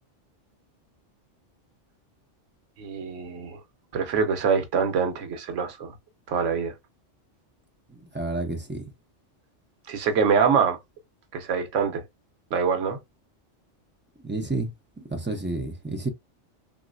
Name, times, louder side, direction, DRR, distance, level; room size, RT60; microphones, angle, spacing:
voice 1, 2.8-3.6 3.9-5.9 6.3-6.7 9.9-10.8 11.3-12.0 12.5-13.0, right 6 dB, 90° right, 1.1 m, -24 dB
voice 2, 7.9-8.8 14.2-14.7 15.0-16.1, right 2 dB, 20° right, 0.3 m, -30 dB
3.0 x 2.6 x 2.4 m
omnidirectional pair, 1.2 m